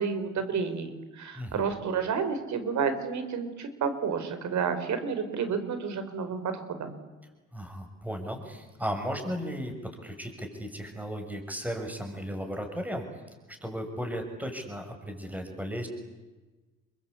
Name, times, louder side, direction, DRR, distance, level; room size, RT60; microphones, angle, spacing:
voice 1, 0.0-7.0, right 6 dB, 70° right, 9 dB, 4.7 m, -30 dB
voice 2, 7.5-9.7 10.0-13.2 13.5-15.9, equal, 5° right, 4 dB, 6.5 m, -35 dB
29.5 x 23.0 x 8.5 m, 1.2 s
cardioid pair, 90°, 30 cm